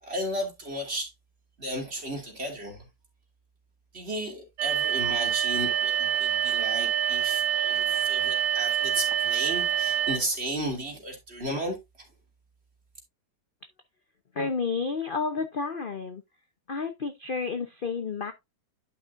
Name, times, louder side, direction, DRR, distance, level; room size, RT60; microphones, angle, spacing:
voice 1, 0.0-1.1 1.6-2.8 3.9-11.8, right 1 dB, 35° right, 3.2 m, -34 dB
sound 1, 4.6-10.2, right 9 dB, 80° right, 1.3 m, -26 dB
voice 2, 14.4-16.2 16.7-18.3, left 4 dB, 40° left, 0.8 m, -30 dB
11.5 x 5.9 x 2.6 m
omnidirectional pair, 1.9 m